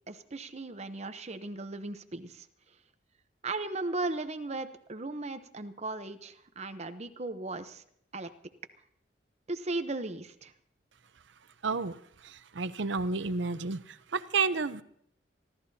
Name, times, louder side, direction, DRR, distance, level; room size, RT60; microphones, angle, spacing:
voice 1, 0.1-2.5 3.4-7.8 8.1-8.3 9.5-10.5, right 2 dB, 35° right, 9 dB, 0.8 m, -37 dB
voice 2, 11.6-11.9 12.5-13.8 14.1-14.8, right 4 dB, 70° right, 13 dB, 0.7 m, -30 dB
26.5 x 13.5 x 2.8 m, 0.69 s
head